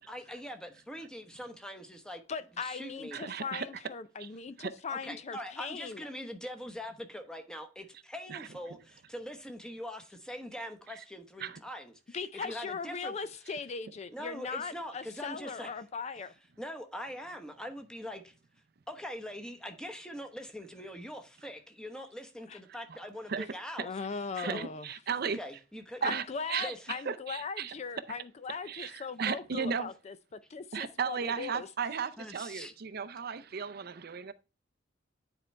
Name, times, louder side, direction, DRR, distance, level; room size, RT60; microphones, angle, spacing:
voice 1, 0.1-2.2 2.6-3.2 4.9-13.1 14.1-15.7 16.6-18.3 18.9-23.9 24.3-24.7 25.3-26.0 26.6-26.8 28.8-28.9 32.2-32.7, equal, 5° left, 1.0 m, -43 dB
voice 2, 2.3-6.1 12.1-16.3 22.5-22.6 23.8-24.9 26.0-31.7, left 5 dB, 35° left, 0.4 m, -39 dB
voice 3, 3.1-3.7 4.2-4.3 4.6-4.7 8.3-8.5 10.9-11.0 11.4-11.6 22.9-23.0 23.3-23.5 24.4-25.4 26.0-27.7 28.6-29.9 30.7-34.3, right 6 dB, 55° right, 0.5 m, -35 dB
9.9 x 4.4 x 3.3 m
head